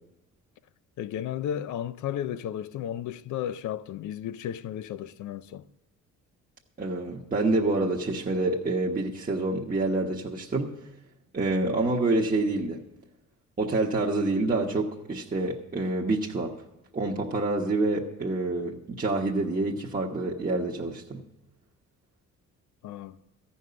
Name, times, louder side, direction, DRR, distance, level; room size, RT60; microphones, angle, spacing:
voice 1, 1.0-5.7 22.8-23.2, left 10 dB, 75° left, 0.6 m, -34 dB
voice 2, 6.8-10.8 11.3-12.8 13.6-16.5 16.9-21.2, right 2 dB, 30° right, 1.2 m, -27 dB
14.0 x 5.6 x 9.5 m
cardioid pair, 90°, 30 cm